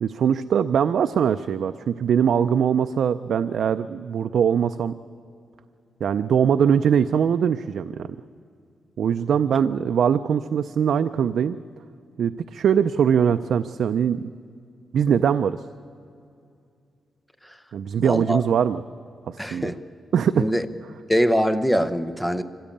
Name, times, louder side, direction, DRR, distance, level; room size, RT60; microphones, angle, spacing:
voice 1, 0.0-4.9 6.0-8.1 9.0-11.6 12.2-14.3 14.9-15.6 17.7-18.8 19.3-19.7 20.1-20.5, right 8 dB, 65° right, 10 dB, 0.4 m, -22 dB
voice 2, 18.0-18.4 19.4-19.8 20.4-20.6 21.1-22.4, equal, 5° left, 11 dB, 0.7 m, -23 dB
24.5 x 16.0 x 8.6 m, 2.5 s
wide cardioid pair, 165°, 0 cm